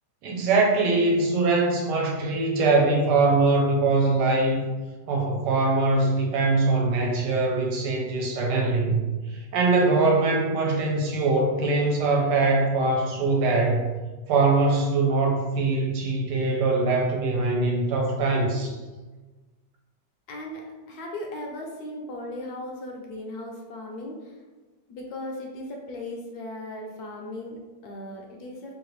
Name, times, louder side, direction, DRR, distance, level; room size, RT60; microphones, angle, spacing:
voice 1, 0.2-4.7 5.1-9.0 9.3-13.8 14.3-18.8, right 3 dB, 75° right, 0 dB, 1.3 m, -22 dB
voice 2, 20.3-24.4 24.9-28.7, left 1 dB, 70° left, 0 dB, 1.0 m, -37 dB
3.1 x 2.5 x 3.1 m, 1.2 s
omnidirectional pair, 1.9 m